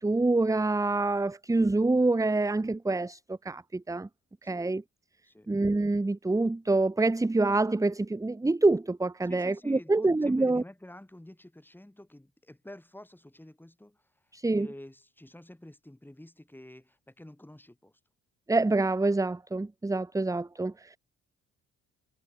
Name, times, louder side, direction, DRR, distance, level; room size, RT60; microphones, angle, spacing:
voice 1, 0.0-4.1 4.4-4.8 5.5-10.6 14.3-14.7 18.5-21.0, right 2 dB, 10° right, 1.0 m, -26 dB
voice 2, 9.2-14.0 14.5-17.9, left 1 dB, 5° left, 5.0 m, -49 dB
cardioid pair, 90°, 30 cm